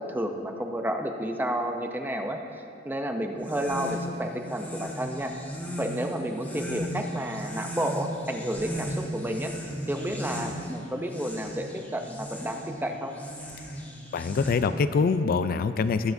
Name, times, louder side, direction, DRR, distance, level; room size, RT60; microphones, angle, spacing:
voice 1, 0.0-5.3 5.8-9.5 9.9-13.1, right 1 dB, 10° right, 4 dB, 0.5 m, -31 dB
sound 1, 3.3-14.9, equal, 10° left, 1.3 m, -37 dB
voice 2, 14.1-16.1, left 5 dB, 50° left, 12 dB, 0.3 m, -25 dB
20.5 x 7.2 x 2.6 m, 2.4 s
head